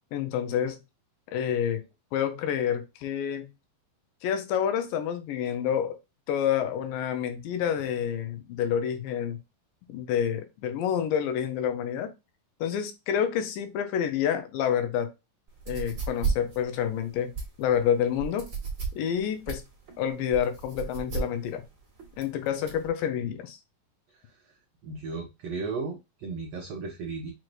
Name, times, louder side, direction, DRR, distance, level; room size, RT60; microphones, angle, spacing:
voice 1, 0.1-0.8 1.3-1.8 2.1-3.5 4.2-6.0 6.3-9.4 9.9-12.1 12.6-15.1 15.7-17.3 17.6-18.5 19.0-19.6 20.0-21.6 22.2-23.6, left 9 dB, 90° left, 7 dB, 2.4 m, -28 dB
sound 1, 15.5-22.9, right 6 dB, 35° right, 1.3 m, -35 dB
voice 2, 24.8-27.3, right 4 dB, 85° right, 2 dB, 1.4 m, -35 dB
6.1 x 3.0 x 2.5 m, 0.25 s
omnidirectional pair, 3.9 m